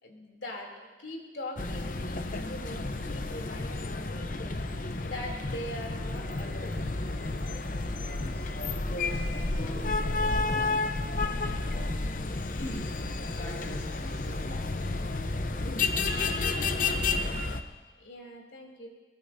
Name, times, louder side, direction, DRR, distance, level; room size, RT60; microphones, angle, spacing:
voice 1, 0.0-4.6 5.0-6.9 18.0-18.9, left 1 dB, 85° left, 0 dB, 3.0 m, -42 dB
sound 1, 1.6-17.6, left 3 dB, 50° left, 0.8 m, -31 dB
voice 2, 8.0-14.8 16.5-17.6, equal, 70° left, -5 dB, 2.1 m, -44 dB
22.0 x 20.0 x 2.7 m, 1.3 s
head